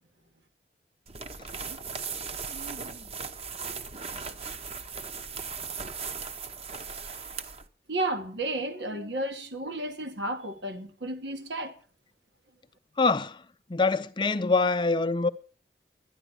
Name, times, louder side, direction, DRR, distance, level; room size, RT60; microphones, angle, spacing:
sound 1, 1.1-7.7, right 5 dB, 35° right, 0.8 m, -38 dB
voice 1, 7.9-11.8, right 1 dB, 85° right, 1.9 m, -32 dB
voice 2, 13.0-13.4 13.7-15.3, left 3 dB, 25° left, 0.5 m, -24 dB
12.0 x 10.0 x 6.3 m
head